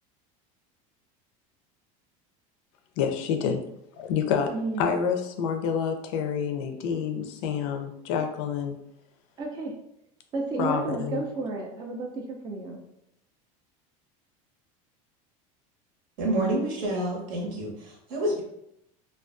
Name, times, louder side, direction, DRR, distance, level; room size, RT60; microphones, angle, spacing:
voice 1, 3.0-3.7 4.0-8.8 10.6-11.2, left 7 dB, 65° left, 6 dB, 0.4 m, -28 dB
voice 2, 4.5-4.8 9.4-9.7 10.3-12.8, right 3 dB, 25° right, 1 dB, 0.3 m, -32 dB
voice 3, 16.2-18.4, right 1 dB, 65° right, -1 dB, 0.9 m, -28 dB
2.3 x 2.3 x 2.4 m, 0.79 s
supercardioid pair, 145°, 18 cm